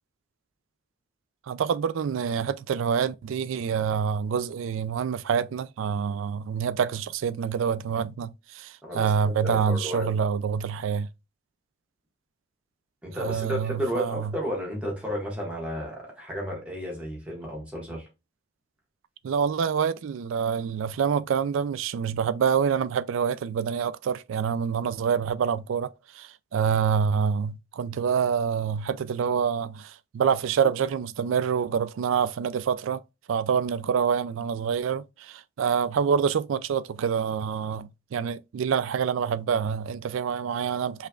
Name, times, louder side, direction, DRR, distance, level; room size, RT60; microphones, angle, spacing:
voice 1, 1.5-11.1 13.2-14.3 19.2-25.9 26.1-33.0 33.3-41.1, right 7 dB, 85° right, 0.3 m, -26 dB
voice 2, 8.8-10.1 13.0-18.1, equal, 5° right, 1.6 m, -32 dB
5.5 x 3.4 x 2.3 m
head